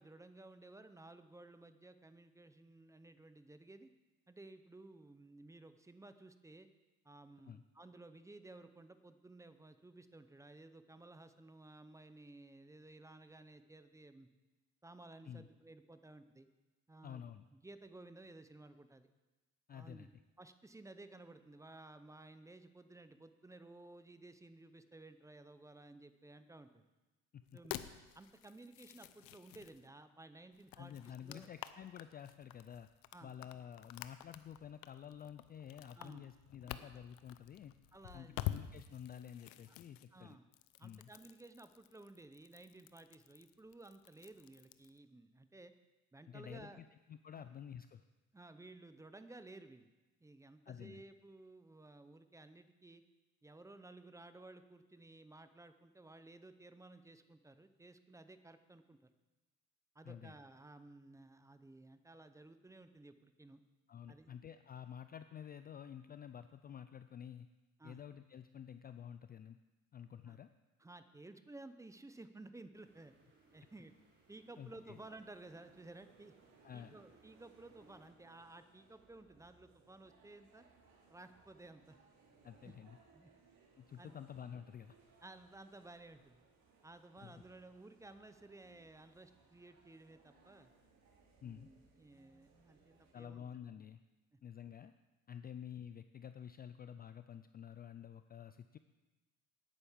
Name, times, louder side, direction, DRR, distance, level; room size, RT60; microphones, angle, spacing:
voice 1, 0.0-3.9 4.3-6.7 7.0-14.3 14.8-16.5 16.9-17.2 17.5-19.1 19.7-20.1 20.4-26.8 27.5-27.8 28.1-31.5 33.1-33.3 36.0-36.3 37.9-38.4 39.7-39.8 40.1-40.5 40.8-45.7 46.1-46.8 47.4-47.5 48.3-49.9 50.2-53.0 53.4-59.1 59.9-63.6 64.1-64.3 67.8-68.0 70.3-70.4 70.8-73.1 73.5-73.9 74.3-76.3 76.7-80.7 81.1-82.0 82.6-82.7 83.1-83.3 84.0-84.2 85.2-86.4 86.8-90.7 91.4-93.5, right 2 dB, 10° right, 11 dB, 0.7 m, -56 dB
voice 2, 17.0-17.5 19.7-20.1 27.3-27.4 30.8-32.9 33.2-37.8 38.1-40.4 40.8-41.1 46.3-48.0 50.7-51.0 60.0-60.3 63.9-67.5 67.8-69.6 69.9-70.5 74.6-75.0 76.6-77.0 82.4-83.0 83.8-85.0 87.2-87.4 91.4-91.7 93.1-94.0 94.4-94.9 95.3-98.8, left 9 dB, 25° left, 11 dB, 0.4 m, -50 dB
sound 1, 27.5-29.9 30.5-45.0, left 14 dB, 75° left, 0.7 m, -49 dB
sound 2, 72.7-78.1, right 3 dB, 30° right, 4.1 m, -69 dB
sound 3, 74.9-93.1, right 4 dB, 50° right, 2.9 m, -68 dB
10.0 x 9.4 x 7.2 m, 1.1 s
cardioid pair, 120°, 35 cm